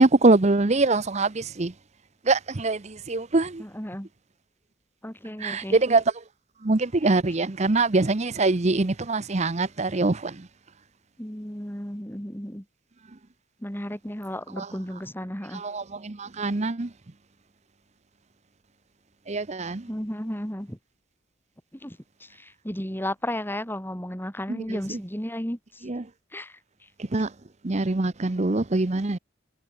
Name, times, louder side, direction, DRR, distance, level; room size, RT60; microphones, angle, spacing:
voice 1, 0.0-1.7 2.2-3.6 5.4-6.2 6.6-10.5 14.5-15.0 15.5-16.9 19.3-19.9 24.5-25.0 25.8-26.1 27.0-27.3 27.6-29.2, right 3 dB, 35° right, 0.8 m, -24 dB
voice 2, 3.6-4.1 5.0-5.8 11.2-12.6 13.6-15.6 19.9-20.8 21.8-25.6 26.3-26.5, left 1 dB, 10° left, 3.8 m, -33 dB
head